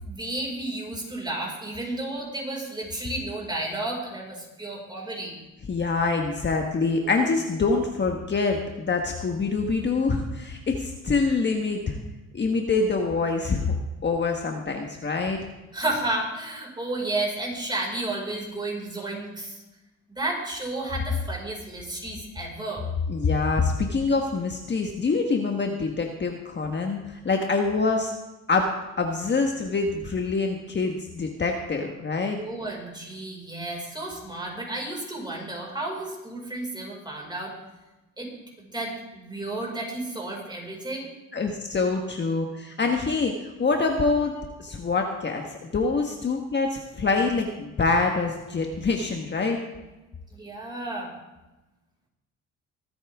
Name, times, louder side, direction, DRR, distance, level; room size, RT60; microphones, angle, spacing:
voice 1, 0.0-5.4 15.7-19.6 20.1-22.8 32.3-37.5 38.2-38.3 38.7-41.1 50.3-51.1, right 2 dB, 15° right, -3 dB, 5.3 m, -32 dB
voice 2, 5.7-12.0 12.3-13.8 14.0-15.4 23.1-28.1 28.5-28.7 29.0-32.4 41.3-44.3 44.6-49.6, left 4 dB, 35° left, 2 dB, 1.4 m, -25 dB
24.0 x 8.8 x 3.6 m, 1.1 s
cardioid pair, 90°, 30 cm